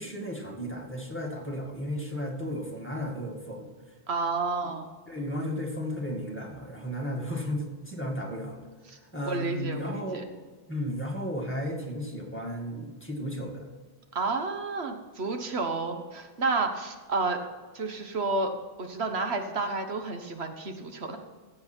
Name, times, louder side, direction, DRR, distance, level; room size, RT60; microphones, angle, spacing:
voice 1, 0.0-3.7 4.6-4.7 5.1-8.7 9.1-10.3 10.7-13.7, equal, 10° left, -1 dB, 2.0 m, -34 dB
voice 2, 4.1-5.0 8.9-9.0 9.3-10.2 14.1-17.4 17.7-18.5 18.8-21.2, right 3 dB, 80° right, 5 dB, 1.5 m, -30 dB
15.5 x 7.6 x 4.5 m, 1.4 s
omnidirectional pair, 1.1 m